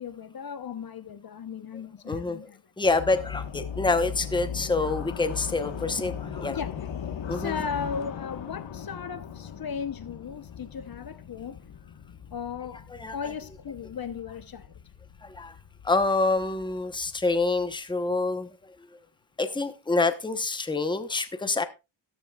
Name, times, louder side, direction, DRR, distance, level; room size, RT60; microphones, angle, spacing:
voice 1, 0.0-2.6 6.5-6.9 7.3-11.6 12.3-12.8 13.1-14.7, left 6 dB, 50° left, 0.9 m, -36 dB
voice 2, 2.1-2.4 2.8-6.6 7.3-7.5 13.0-13.1 15.2-15.5 15.8-18.5 19.4-21.6, left 3 dB, 10° left, 0.9 m, -26 dB
sound 1, 2.8-17.7, left 8 dB, 85° left, 1.4 m, -39 dB
13.5 x 13.0 x 2.3 m
wide cardioid pair, 155°, 45 cm